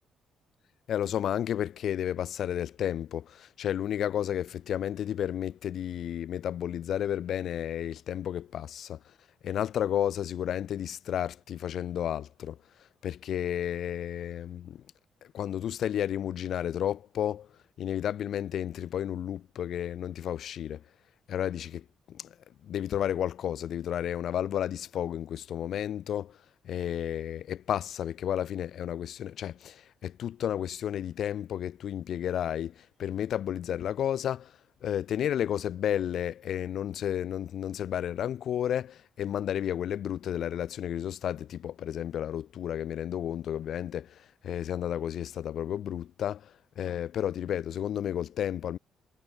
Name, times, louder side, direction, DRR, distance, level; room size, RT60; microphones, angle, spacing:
voice 1, 0.9-9.0 9.4-12.6 13.0-14.8 15.3-17.5 17.8-20.8 21.3-22.3 22.6-26.4 26.6-34.5 34.8-48.8, left 10 dB, 70° left, 1.3 m, -32 dB
cardioid pair, 90°, 0 cm